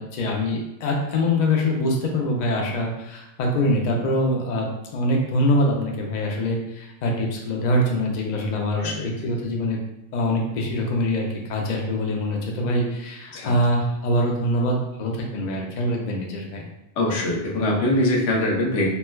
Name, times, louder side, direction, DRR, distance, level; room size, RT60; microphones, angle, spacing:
voice 1, 0.0-8.9 9.2-9.8 10.1-16.7, left 1 dB, 50° left, 0 dB, 0.5 m, -24 dB
voice 2, 8.8-9.3 13.3-13.5 17.0-18.9, left 1 dB, 80° left, -2 dB, 1.0 m, -23 dB
4.3 x 2.1 x 2.2 m, 0.89 s
omnidirectional pair, 1.2 m